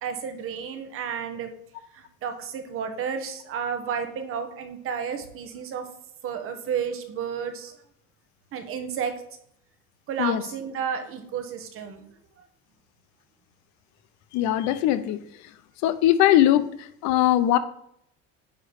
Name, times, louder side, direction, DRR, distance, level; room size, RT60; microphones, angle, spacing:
voice 1, 0.0-1.5 1.9-5.9 6.2-7.7 8.5-9.1 10.1-12.0, right 7 dB, 45° right, 6 dB, 1.2 m, -31 dB
voice 2, 14.3-15.2 15.8-16.7 17.0-17.6, left 13 dB, 70° left, 12 dB, 0.7 m, -20 dB
9.3 x 3.2 x 6.6 m, 0.71 s
cardioid pair, 145°, 30 cm